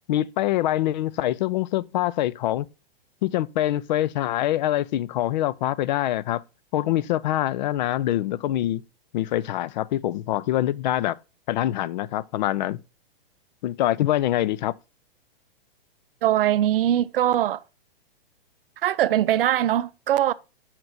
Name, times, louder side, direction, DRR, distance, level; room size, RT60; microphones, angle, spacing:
voice 1, 0.1-2.7 3.2-6.4 6.7-8.8 9.1-11.2 11.5-12.8 13.6-14.7, left 13 dB, 50° left, 0.4 m, -24 dB
voice 2, 16.2-17.6 18.8-20.3, right 12 dB, 65° right, 0.5 m, -21 dB
7.7 x 5.9 x 2.6 m
hypercardioid pair, 135°, 30 cm